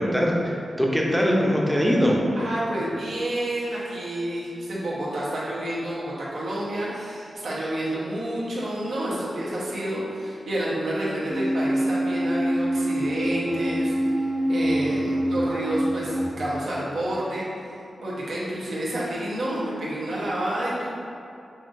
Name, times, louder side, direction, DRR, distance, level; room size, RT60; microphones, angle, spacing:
voice 1, 0.0-2.2, equal, 5° right, -2 dB, 0.5 m, -22 dB
voice 2, 2.3-13.9 14.5-17.7 18.0-21.0, right 1 dB, 85° right, -8 dB, 1.0 m, -29 dB
sound 1, 11.3-16.3, right 1 dB, 70° right, 1.5 m, -25 dB
5.5 x 2.6 x 2.5 m, 2.6 s
wide cardioid pair, 115°, 0 cm